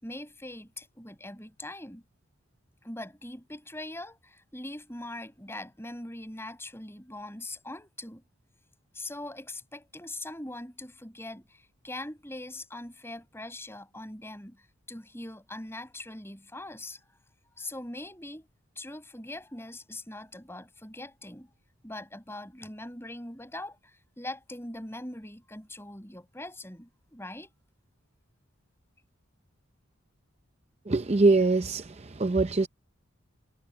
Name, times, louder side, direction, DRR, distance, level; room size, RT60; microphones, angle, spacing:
voice 1, 0.0-2.0 2.8-8.2 8.9-17.0 17.6-18.5 18.8-21.5 21.8-27.5, left 1 dB, 10° left, 7.4 m, -42 dB
voice 2, 30.9-32.7, right 3 dB, 30° right, 0.6 m, -23 dB
head